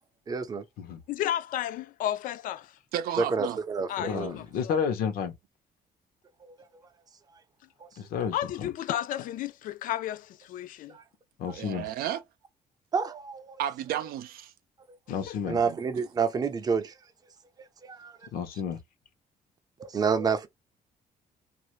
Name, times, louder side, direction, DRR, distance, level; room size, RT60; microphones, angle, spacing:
voice 1, 0.3-0.6 3.2-4.3 7.8-7.9 10.9-11.0 11.5-11.6 12.9-13.6 15.5-17.0 17.6-18.2 19.8-20.5, right 5 dB, 25° right, 0.5 m, -29 dB
voice 2, 1.1-2.8 3.9-4.7 8.3-11.0 15.3-15.4, left 12 dB, 65° left, 0.4 m, -33 dB
voice 3, 2.9-3.6 11.5-12.2 13.6-14.5 15.7-15.8, right 11 dB, 90° right, 0.5 m, -32 dB
voice 4, 4.0-5.3 8.0-8.7 11.4-11.9 15.1-15.6 18.3-18.8, left 7 dB, 90° left, 0.8 m, -31 dB
2.5 x 2.5 x 3.0 m
cardioid pair, 170°, 15 cm